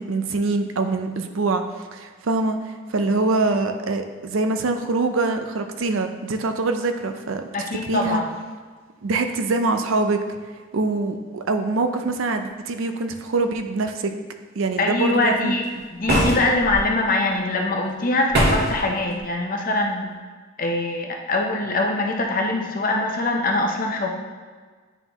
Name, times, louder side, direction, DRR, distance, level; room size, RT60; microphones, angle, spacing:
voice 1, 0.0-1.6 1.9-8.2 9.0-10.4 10.7-14.1 14.6-15.5, right 3 dB, 70° right, 7 dB, 0.5 m, -24 dB
voice 2, 7.5-8.3 14.8-15.6 15.9-20.1 20.6-24.1, left 2 dB, 40° left, 2 dB, 0.7 m, -23 dB
sound 1, 16.0-16.8 18.3-18.8, right 1 dB, 50° right, 1.2 m, -20 dB
9.1 x 3.8 x 3.0 m, 1.5 s
head